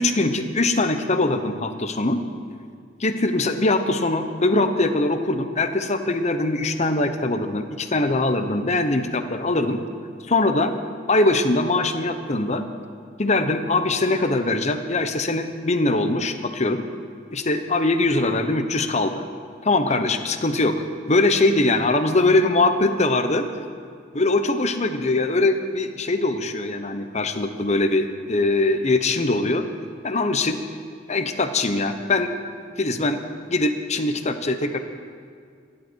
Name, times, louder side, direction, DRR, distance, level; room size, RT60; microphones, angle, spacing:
voice 1, 0.0-2.2 3.0-9.8 10.3-10.7 11.1-12.7 13.2-16.9 17.3-19.3 19.6-23.5 24.1-29.7 30.0-30.6 31.1-32.3 32.8-33.2 33.5-34.8, left 2 dB, 35° left, 8 dB, 1.0 m, -22 dB
27.5 x 11.5 x 4.6 m, 2.2 s
head